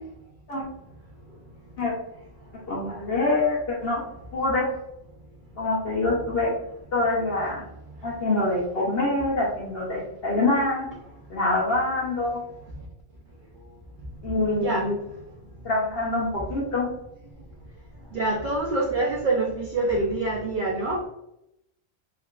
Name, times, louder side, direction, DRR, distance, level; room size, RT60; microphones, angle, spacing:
voice 1, 2.5-4.0 4.3-4.7 5.6-6.5 6.9-7.6 8.0-10.9 11.3-12.4 14.2-15.0 15.6-16.9, left 2 dB, 55° left, -3 dB, 0.9 m, -25 dB
voice 2, 18.1-21.1, right 2 dB, 60° right, -1 dB, 0.5 m, -25 dB
3.6 x 2.3 x 2.3 m, 0.82 s
omnidirectional pair, 1.3 m